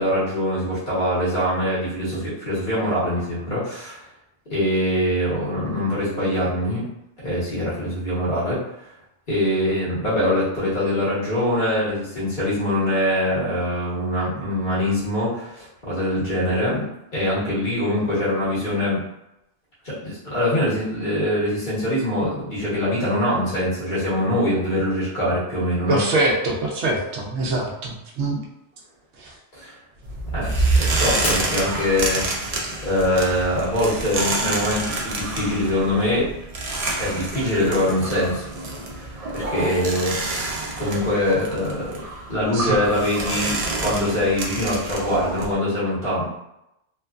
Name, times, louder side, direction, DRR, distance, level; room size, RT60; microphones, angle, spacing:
voice 1, 0.0-4.0 4.5-6.9 7.2-8.6 9.3-16.8 17.1-19.0 19.8-26.0 29.5-29.7 30.3-36.3 37.0-38.5 38.9-46.3, left 1 dB, 45° left, -9 dB, 1.3 m, -23 dB
voice 2, 25.9-28.4 29.2-29.3 42.5-42.8, right 2 dB, 75° right, -1 dB, 0.9 m, -24 dB
sound 1, 30.0-45.5, right 2 dB, 55° right, 0.4 m, -27 dB
Shatter, 31.2-32.5 33.1-33.5 34.1-34.2, left 2 dB, 70° left, 0.9 m, -32 dB
2.9 x 2.3 x 2.4 m, 0.85 s
omnidirectional pair, 1.2 m